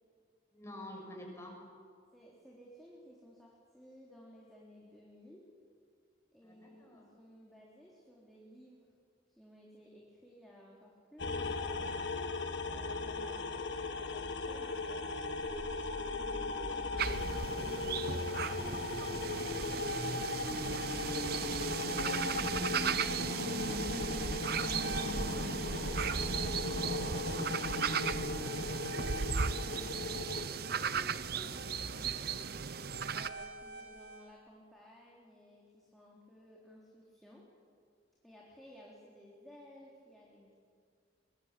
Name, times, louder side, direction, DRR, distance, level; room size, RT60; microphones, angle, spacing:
voice 1, 0.5-1.7 6.4-7.1 16.7-17.1, left 1 dB, 15° left, 0 dB, 6.6 m, -49 dB
voice 2, 2.1-5.5 6.3-8.9 9.3-12.3 12.6-15.1 16.1-17.2 17.5-18.9 19.6-25.5 26.0-31.7 31.9-32.7 33.1-37.5 38.2-40.6, equal, ahead, -4 dB, 3.8 m, -57 dB
sound 1, 11.2-30.5, left 3 dB, 80° left, 1.6 m, -38 dB
sound 2, 14.5-34.2, right 1 dB, 75° right, 5.6 m, -44 dB
sound 3, 17.0-33.3, right 6 dB, 60° right, 0.8 m, -36 dB
24.0 x 23.5 x 8.5 m, 2.1 s
head